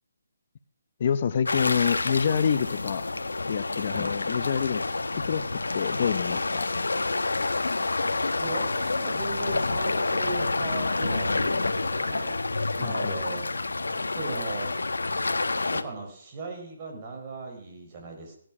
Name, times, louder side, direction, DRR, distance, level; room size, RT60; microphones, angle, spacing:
voice 1, 1.0-3.0 3.5-4.8 5.1-6.9 12.8-13.2, left 7 dB, 45° left, 12 dB, 0.9 m, -27 dB
sound 1, 1.5-15.8, left 3 dB, 90° left, 1.3 m, -28 dB
voice 2, 8.4-12.4 12.8-13.4 14.2-14.7 15.7-18.4, right 3 dB, 30° right, 2 dB, 4.5 m, -37 dB
17.0 x 11.0 x 6.0 m, 0.65 s
hypercardioid pair, 155°, 0 cm